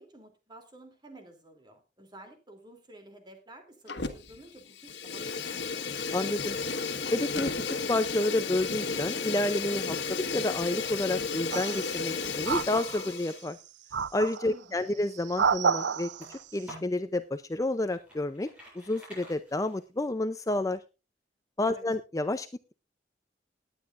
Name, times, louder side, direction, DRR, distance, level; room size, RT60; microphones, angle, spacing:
voice 1, 0.0-5.8 14.4-14.9 21.7-21.8, right 1 dB, 25° right, 5 dB, 2.9 m, -52 dB
Fire, 3.9-4.4 4.7-13.4, left 4 dB, 85° left, 1.5 m, -33 dB
voice 2, 6.1-6.6 7.1-13.6 14.1-18.5 18.7-20.8 21.6-22.5, left 2 dB, 20° left, 10 dB, 0.5 m, -30 dB
sound 1, 11.5-12.1 12.4-13.3 13.9-14.5 15.1-16.3, right 6 dB, 85° right, 0.5 m, -29 dB
sound 2, 15.1-17.0 17.5-20.0, right 1 dB, 5° right, 7.9 m, -50 dB
18.5 x 9.7 x 2.5 m, 0.29 s
head